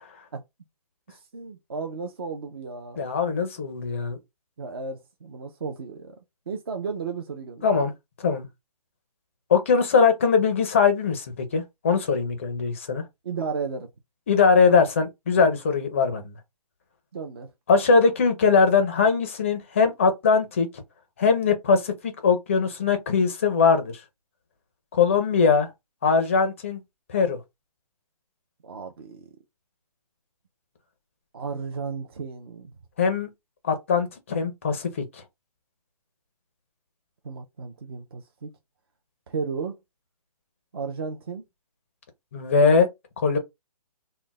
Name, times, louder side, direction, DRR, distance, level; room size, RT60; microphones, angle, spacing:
voice 1, 1.1-3.0 4.6-6.2 6.5-7.9 13.2-13.9 17.1-17.5 28.6-29.3 31.3-32.7 37.2-38.5 39.3-39.8 40.7-41.4, right 5 dB, 40° right, 0.4 m, -34 dB
voice 2, 3.0-4.2 7.6-7.9 8.2-8.5 9.5-13.0 14.3-16.3 17.7-20.7 21.2-23.9 24.9-25.7 26.0-26.8 27.1-27.4 33.0-33.3 33.6-34.9 42.3-42.9 43.2-43.4, left 5 dB, 20° left, 0.4 m, -21 dB
2.4 x 2.1 x 3.7 m
hypercardioid pair, 160°, 20 cm